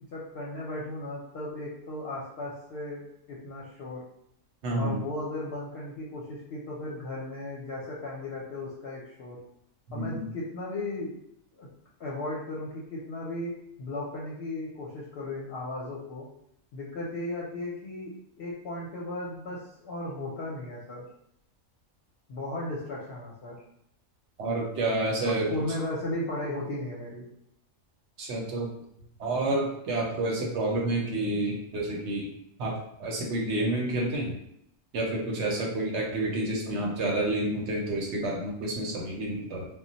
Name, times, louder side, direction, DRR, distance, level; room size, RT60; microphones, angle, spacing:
voice 1, 0.1-3.0 3.3-4.0 4.8-9.4 9.9-11.1 11.6-11.7 12.0-13.5 13.8-16.3 16.7-21.0 22.3-23.6 25.2-27.2, left 2 dB, 60° left, -4 dB, 0.7 m, -36 dB
voice 2, 4.6-5.0 9.9-10.2 24.4-25.5 28.2-28.7 29.2-32.3 32.6-32.7 33.0-34.4 34.9-39.7, right 2 dB, 65° right, -1 dB, 0.9 m, -29 dB
2.2 x 2.1 x 3.8 m, 0.77 s
omnidirectional pair, 1.3 m